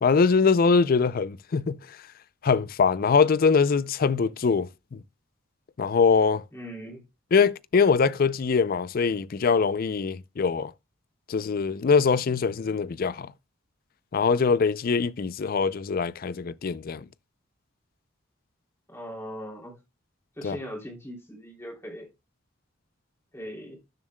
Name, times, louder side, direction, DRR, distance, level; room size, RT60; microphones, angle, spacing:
voice 1, 0.0-1.8 2.4-5.0 5.8-6.4 7.3-10.7 11.3-13.3 14.1-17.1 20.4-20.6, left 5 dB, 45° left, 0.4 m, -23 dB
voice 2, 6.5-7.0 18.9-19.8 20.4-22.1 23.3-23.8, equal, 15° left, 2.9 m, -39 dB
12.5 x 7.2 x 2.2 m
head